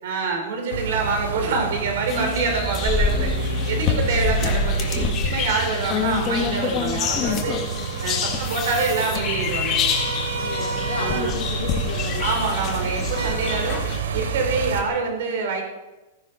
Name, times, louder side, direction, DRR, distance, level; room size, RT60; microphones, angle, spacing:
voice 1, 0.0-3.3 3.7-7.6 8.0-9.8 11.0-11.4 12.2-13.8 14.1-15.6, right 4 dB, 50° right, 3 dB, 5.4 m, -26 dB
sound 1, 0.7-14.8, right 4 dB, 85° right, 3.0 m, -28 dB
voice 2, 2.1-2.8 4.1-4.5 7.6-8.5 10.4-12.2 13.4-13.7, left 5 dB, 50° left, -3 dB, 2.5 m, -34 dB
sound 2, 2.1-14.0, left 6 dB, 20° left, 1.8 m, -27 dB
16.0 x 15.0 x 5.8 m, 1.1 s
supercardioid pair, 180°, 0 cm